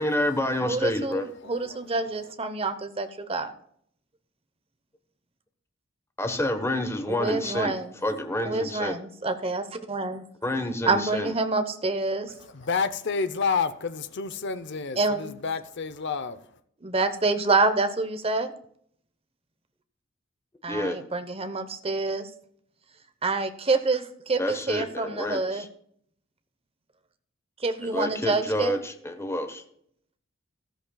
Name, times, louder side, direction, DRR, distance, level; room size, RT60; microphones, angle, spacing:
voice 1, 0.0-1.2 6.2-7.7 8.0-8.9 10.4-11.3 20.7-21.0 24.4-25.4 27.8-29.6, left 1 dB, 15° left, 1.1 m, -28 dB
voice 2, 0.6-3.5 7.1-7.9 8.4-10.2 10.8-12.3 15.0-15.3 16.8-18.5 20.6-22.3 23.2-25.7 27.6-28.8, right 3 dB, 30° right, 0.9 m, -27 dB
voice 3, 1.4-1.8 2.2-2.3 12.3-16.5, left 5 dB, 60° left, 0.7 m, -30 dB
13.5 x 13.0 x 2.3 m
head